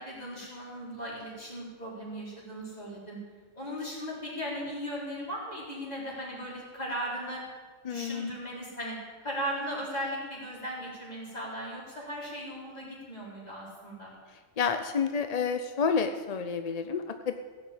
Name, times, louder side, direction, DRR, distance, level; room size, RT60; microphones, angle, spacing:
voice 1, 0.0-3.2 3.5-7.4 7.9-14.1, equal, 30° left, -5 dB, 4.3 m, -37 dB
voice 2, 7.8-8.3 14.6-17.4, left 6 dB, 45° left, 8 dB, 0.5 m, -29 dB
16.0 x 6.3 x 8.6 m, 1.5 s
omnidirectional pair, 1.4 m